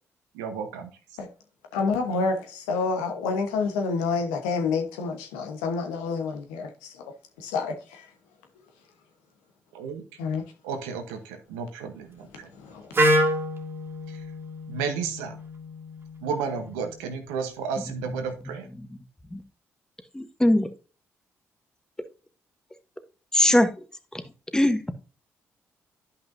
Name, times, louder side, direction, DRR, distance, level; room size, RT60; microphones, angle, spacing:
voice 1, 0.4-0.9 9.7-10.0 10.7-11.2 11.5-12.1 14.7-15.3 16.2-18.6, right 6 dB, 90° right, 1.0 m, -32 dB
voice 2, 1.7-7.1 7.4-8.1 10.2-10.5 12.3-13.1, left 4 dB, 90° left, 1.0 m, -29 dB
Wind instrument woodwind instrument, 12.9-16.8, equal, 40° right, 1.9 m, -27 dB
voice 3, 17.8-18.2 18.4-18.5 19.3-19.4 20.1-20.7 23.3-23.7 24.1-24.2 24.5-24.8, left 1 dB, 10° left, 1.1 m, -21 dB
10.5 x 5.5 x 2.6 m
hypercardioid pair, 50°, 6 cm